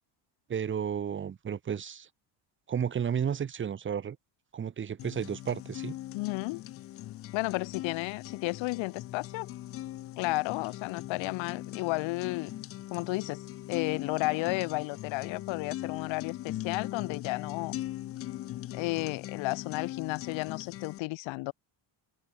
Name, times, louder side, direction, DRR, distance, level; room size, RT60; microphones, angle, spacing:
voice 1, 0.5-2.1 2.7-4.2 4.5-6.0, right 8 dB, 25° right, 2.0 m, -32 dB
sound 1, 5.0-21.0, left 14 dB, 35° left, 0.4 m, -40 dB
voice 2, 6.1-6.6 7.3-9.5 10.2-12.5 12.9-13.4 13.7-17.7 18.7-21.5, left 23 dB, 85° left, 1.6 m, -33 dB
open air
cardioid pair, 175°, 44 cm